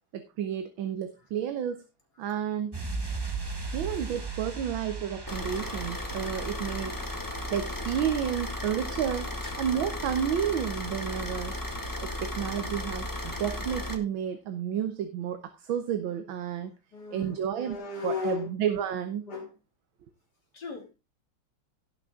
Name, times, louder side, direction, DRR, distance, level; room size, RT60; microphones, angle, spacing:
voice 1, 0.1-1.8 2.2-2.8 3.7-7.0 7.5-9.3 9.6-11.5 12.0-16.7 17.1-17.8 18.0-19.3, right 9 dB, 70° right, 9 dB, 1.7 m, -31 dB
sound 1, 2.7-9.2 9.5-9.6, right 4 dB, 20° right, 0.6 m, -38 dB
Car / Idling, 5.3-13.9, left 1 dB, 10° left, 1.0 m, -35 dB
voice 2, 16.9-18.5 19.3-19.5 20.5-20.9, left 4 dB, 50° left, 2 dB, 3.5 m, -36 dB
17.0 x 6.2 x 3.6 m, 0.27 s
omnidirectional pair, 2.3 m